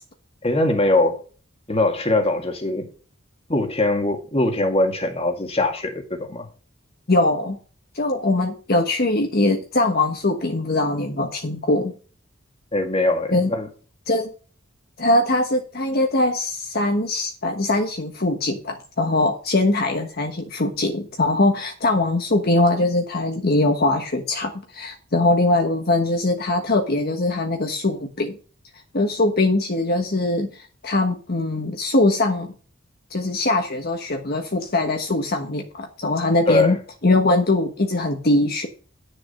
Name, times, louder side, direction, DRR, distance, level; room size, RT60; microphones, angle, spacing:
voice 1, 0.4-1.2 1.7-2.9 3.5-6.5 12.7-13.7 36.5-36.8, left 2 dB, 30° left, 2.0 m, -21 dB
voice 2, 7.1-7.6 7.9-11.9 13.3-13.5 14.1-14.3 15.0-28.4 28.9-32.5 33.1-36.8 37.0-38.7, left 2 dB, 50° left, 1.3 m, -21 dB
10.5 x 6.8 x 5.5 m
head